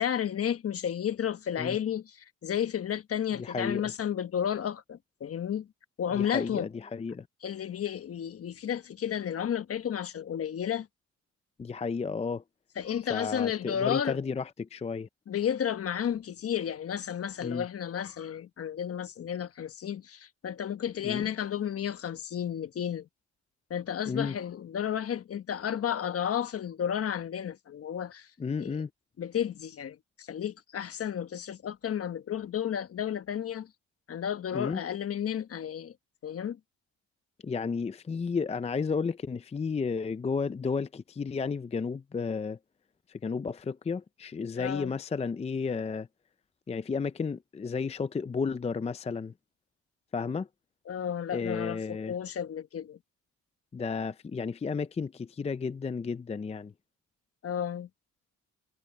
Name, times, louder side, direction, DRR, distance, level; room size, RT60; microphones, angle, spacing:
voice 1, 0.0-5.7 6.0-6.7 7.4-10.9 12.8-14.2 15.3-23.1 23.7-28.3 28.6-28.7 29.2-33.7 34.1-35.9 36.2-36.6 44.6-44.9 50.9-53.0 57.4-57.9, left 9 dB, 50° left, 1.2 m, -32 dB
voice 2, 3.3-3.9 6.1-7.3 11.6-12.4 13.1-15.1 17.4-17.7 21.0-21.2 24.1-24.4 28.4-28.9 34.5-34.8 37.4-42.6 43.1-46.1 46.7-49.3 50.1-50.5 51.3-52.2 53.7-56.7, left 5 dB, 20° left, 0.5 m, -32 dB
cardioid pair, 90°, 30 cm